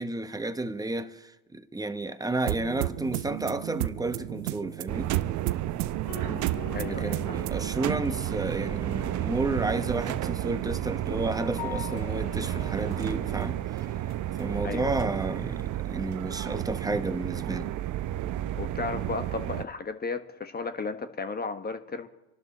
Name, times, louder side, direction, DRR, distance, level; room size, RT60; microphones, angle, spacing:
voice 1, 0.0-5.1 6.9-13.6 14.4-17.8, right 2 dB, 10° right, 1.1 m, -32 dB
sound 1, 2.5-7.8, right 17 dB, 80° right, 0.7 m, -34 dB
sound 2, 3.9-14.5, left 10 dB, 55° left, 2.3 m, -46 dB
sound 3, 4.9-19.6, right 13 dB, 45° right, 0.8 m, -32 dB
voice 2, 6.7-7.4 14.6-14.9 18.6-22.1, left 4 dB, 20° left, 1.5 m, -34 dB
27.0 x 12.0 x 4.2 m
supercardioid pair, 95°, 44 cm